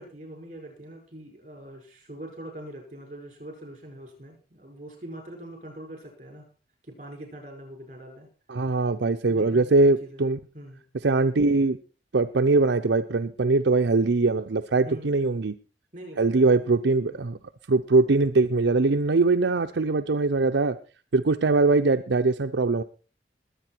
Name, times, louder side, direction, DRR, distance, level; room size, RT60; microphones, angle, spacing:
voice 1, 0.0-6.4 6.8-8.3 9.2-10.2 10.5-10.8 14.8-15.4 15.9-16.7 17.1-17.2, right 1 dB, 40° right, 3 dB, 6.2 m, -43 dB
voice 2, 8.5-10.4 11.0-11.8 12.1-15.5 16.2-17.4 17.7-20.8 21.1-22.8, right 3 dB, 80° right, 7 dB, 0.6 m, -22 dB
21.0 x 8.4 x 4.5 m, 0.37 s
head